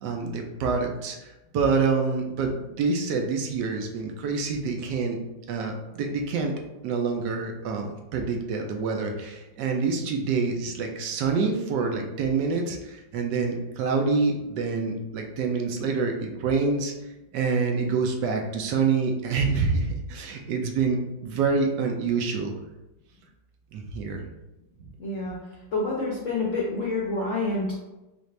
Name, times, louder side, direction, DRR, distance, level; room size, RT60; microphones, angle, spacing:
voice 1, 0.0-1.2 1.5-5.2 5.5-6.5 6.8-16.9 17.3-22.5 23.7-24.2, right 4 dB, 75° right, 2 dB, 1.1 m, -26 dB
voice 2, 25.0-25.3 25.7-27.7, left 2 dB, 55° left, -5 dB, 0.9 m, -27 dB
4.2 x 2.5 x 3.1 m, 0.98 s
omnidirectional pair, 2.0 m